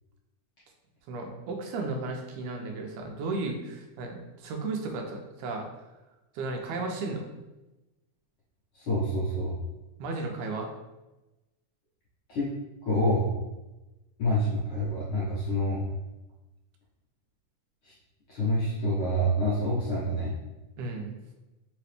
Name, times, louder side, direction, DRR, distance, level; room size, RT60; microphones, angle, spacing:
voice 1, 1.1-5.7 6.4-7.3 10.0-10.7 20.8-21.1, right 3 dB, 85° right, 2 dB, 2.0 m, -34 dB
voice 2, 8.7-9.5 12.3-12.5 12.8-13.3 14.2-15.8 17.8-17.9 18.3-20.3, equal, 75° left, -8 dB, 1.2 m, -27 dB
4.8 x 2.9 x 3.3 m, 1.0 s
omnidirectional pair, 3.6 m